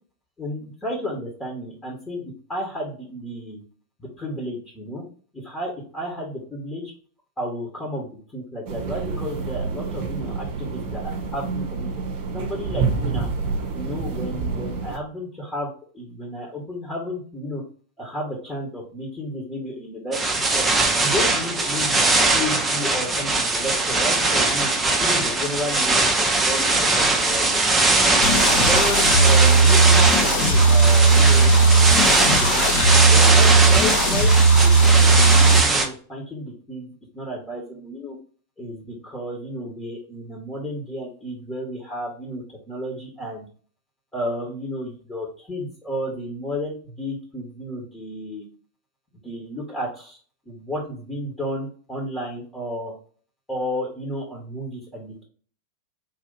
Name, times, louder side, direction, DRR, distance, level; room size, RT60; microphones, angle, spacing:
voice 1, 0.4-2.2 2.5-3.6 4.0-5.0 5.3-6.9 7.4-11.9 12.3-13.3 13.7-15.7 15.9-17.6 18.0-20.7 21.0-24.7 25.0-27.7 28.5-32.6 33.1-38.2 38.6-43.4 44.1-48.5 49.2-50.2 50.5-52.9 53.5-55.1, equal, 10° left, -2 dB, 1.3 m, -32 dB
sound 1, 8.7-15.0, right 4 dB, 45° right, 0.9 m, -28 dB
sound 2, 20.1-35.9, right 2 dB, 15° right, 0.8 m, -20 dB
sound 3, 28.2-35.6, right 3 dB, 55° left, 1.0 m, -16 dB
4.1 x 2.7 x 3.9 m, 0.43 s
figure-of-eight pair, 90°, 0 cm